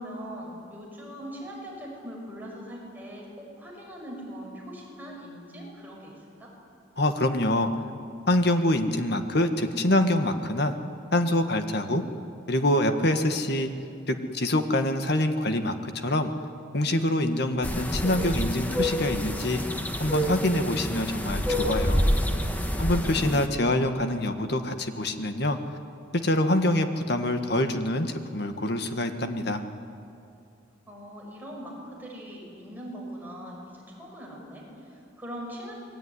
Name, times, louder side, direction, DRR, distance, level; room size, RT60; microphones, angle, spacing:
voice 1, 0.0-6.5 30.9-35.7, equal, 10° right, -3 dB, 6.1 m, -41 dB
voice 2, 7.0-7.7 8.3-10.7 11.1-12.0 12.5-13.7 14.1-16.3 16.7-19.6 20.0-22.0 22.8-25.6 26.1-29.6, left 1 dB, 60° left, 7 dB, 1.7 m, -25 dB
sound 1, 17.6-23.5, equal, 10° left, 1.5 m, -27 dB
27.0 x 21.0 x 9.8 m, 2.5 s
head